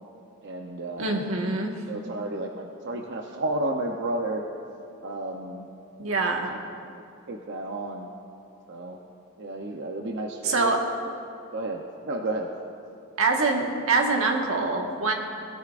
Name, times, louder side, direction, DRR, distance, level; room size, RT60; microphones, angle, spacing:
voice 1, 0.4-1.3 1.9-4.4 5.0-5.7 6.5-6.6 7.3-8.1 8.7-9.0 9.4-10.7 11.5-12.5, right 2 dB, 60° right, 2 dB, 0.7 m, -32 dB
voice 2, 1.0-1.7 6.0-6.5 10.4-10.8 13.2-15.1, right 3 dB, 90° right, 1 dB, 1.6 m, -24 dB
20.0 x 13.0 x 2.5 m, 2.5 s
head